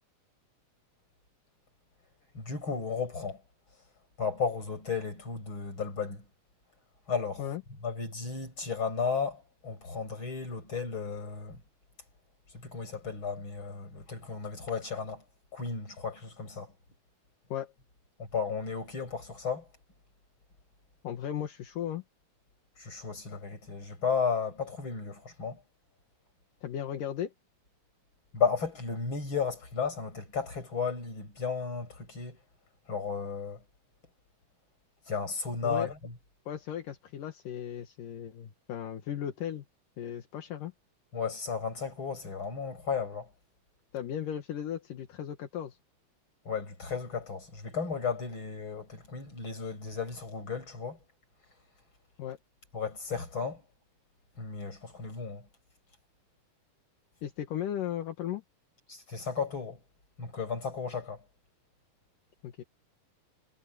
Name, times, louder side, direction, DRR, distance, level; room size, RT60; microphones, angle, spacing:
voice 1, 2.3-3.4 4.2-6.2 7.1-7.4 7.8-11.6 12.5-15.2 15.5-16.7 18.3-19.7 22.8-25.6 28.3-32.4 32.9-33.6 35.1-35.9 41.1-43.3 46.5-51.0 52.7-53.6 54.4-55.4 58.9-59.8 60.2-61.2, left 5 dB, 35° left, 7.5 m, -34 dB
voice 2, 21.0-22.0 26.6-27.3 35.6-35.9 36.5-39.6 40.0-40.7 43.9-45.8 52.2-52.4 57.2-58.4 62.4-62.6, left 10 dB, 70° left, 3.1 m, -36 dB
omnidirectional pair, 4.0 m